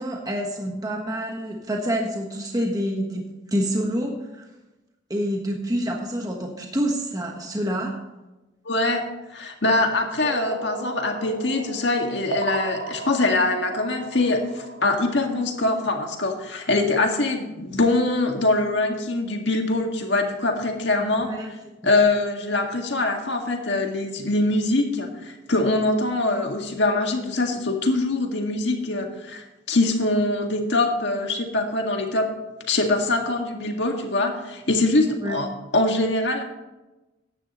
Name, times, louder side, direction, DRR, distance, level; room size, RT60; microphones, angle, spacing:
voice 1, 0.0-4.4 5.1-8.1 21.0-21.5 35.2-35.4, equal, 20° right, 0 dB, 1.3 m, -27 dB
voice 2, 8.7-9.1 9.3-21.3 21.8-32.3 32.7-35.5 35.7-36.4, left 2 dB, 65° left, 2 dB, 1.9 m, -23 dB
sound 1, 10.2-15.6, right 2 dB, 90° right, 1.8 m, -34 dB
14.5 x 10.5 x 3.1 m, 1.0 s
head